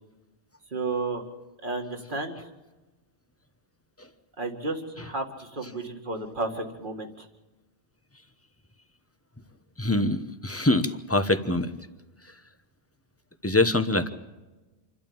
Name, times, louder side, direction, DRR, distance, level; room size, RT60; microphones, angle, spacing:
voice 1, 0.7-1.2 1.6-2.5 4.4-7.3, right 3 dB, 50° right, 4 dB, 2.3 m, -32 dB
voice 2, 9.8-11.7 13.4-14.1, left 2 dB, 15° left, 9 dB, 1.0 m, -24 dB
27.5 x 12.0 x 8.8 m, 1.1 s
omnidirectional pair, 1.1 m